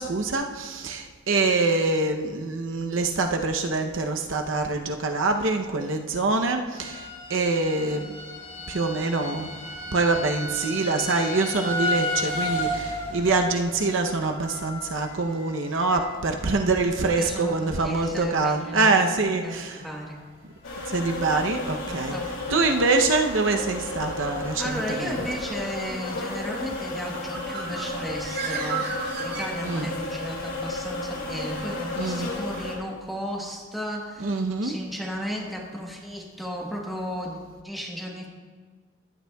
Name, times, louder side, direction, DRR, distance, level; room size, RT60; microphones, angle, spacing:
voice 1, 0.0-8.2 8.7-9.5 9.9-19.8 20.9-22.2 22.5-25.2 29.6-29.9 32.0-32.3 34.2-34.8, right 3 dB, 65° right, 4 dB, 0.7 m, -25 dB
sound 1, 6.8-17.5 17.7-18.2 18.7-18.8 19.2-19.3, left 1 dB, 35° left, 2.6 m, -34 dB
voice 2, 17.2-20.2 21.9-22.8 24.6-28.8 29.2-38.3, equal, ahead, -3 dB, 1.1 m, -34 dB
sound 2, 20.6-32.7, left 2 dB, 80° left, 2.5 m, -33 dB
Bird, 27.1-30.1, right 6 dB, 50° right, 1.2 m, -34 dB
15.5 x 11.0 x 2.3 m, 1.5 s
head